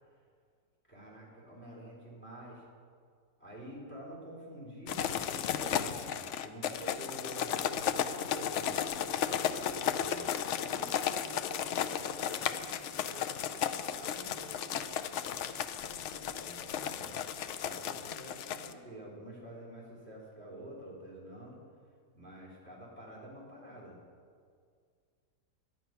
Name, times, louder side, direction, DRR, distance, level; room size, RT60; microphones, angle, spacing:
voice 1, 0.9-2.6 3.4-6.0 6.4-10.3 16.4-17.2 17.6-21.6 22.1-24.0, right 1 dB, 5° left, -4 dB, 3.2 m, -48 dB
sound 1, 4.9-18.7, left 9 dB, 80° left, 0.6 m, -34 dB
voice 2, 10.5-13.3 13.9-17.2, right 2 dB, 55° right, 0 dB, 1.5 m, -53 dB
10.5 x 9.2 x 5.8 m, 2.1 s
omnidirectional pair, 1.8 m